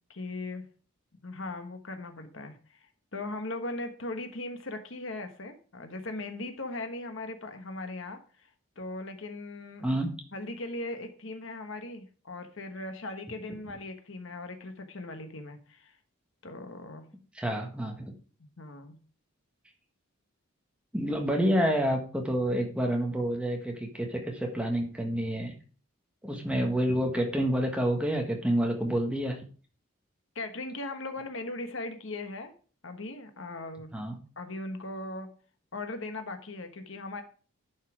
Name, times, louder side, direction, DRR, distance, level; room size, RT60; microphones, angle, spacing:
voice 1, 0.1-0.7 1.2-8.5 8.8-9.9 10.3-16.0 16.4-17.0 18.6-19.0 30.3-32.5 32.8-33.9 34.4-35.3 35.7-37.2, left 2 dB, 65° left, 7 dB, 1.2 m, -39 dB
voice 2, 17.3-18.1 20.9-25.5 26.2-29.4 33.9-34.2, equal, 5° right, 2 dB, 1.5 m, -28 dB
11.0 x 5.6 x 4.8 m, 0.39 s
head